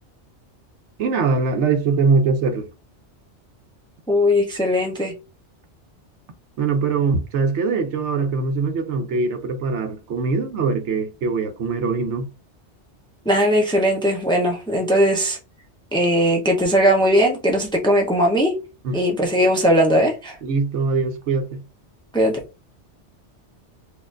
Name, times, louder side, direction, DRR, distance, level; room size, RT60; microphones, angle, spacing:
voice 1, 1.0-2.7 6.6-12.3 18.8-19.0 20.4-21.6, right 4 dB, 75° right, 1.0 m, -22 dB
voice 2, 4.1-5.1 13.3-15.4 15.9-18.5 18.9-20.4 22.1-22.3, equal, 5° left, 0.6 m, -19 dB
4.1 x 2.5 x 2.5 m
omnidirectional pair, 1.2 m